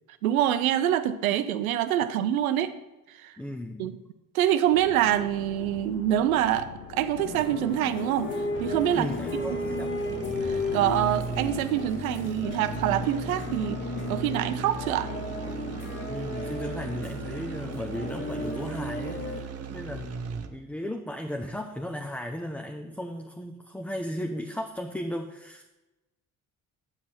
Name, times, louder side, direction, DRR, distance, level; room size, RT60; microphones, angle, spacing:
voice 1, 0.2-2.7 3.2-3.3 3.8-3.9 4.3-8.3 8.6-9.1 9.3-9.7 10.4-13.8 14.1-15.1, right 11 dB, 80° right, 12 dB, 0.6 m, -25 dB
voice 2, 3.4-4.0 8.9-10.0 16.1-20.1 20.5-25.8, left 1 dB, 5° left, 3 dB, 0.7 m, -35 dB
sound 1, 4.7-15.9, left 9 dB, 75° left, 0.8 m, -44 dB
sound 2, 7.2-19.4, left 2 dB, 30° left, 1.5 m, -35 dB
sound 3, 8.5-20.7, right 5 dB, 35° right, 0.9 m, -38 dB
9.0 x 7.3 x 4.3 m, 1.0 s
hypercardioid pair, 50°, 42 cm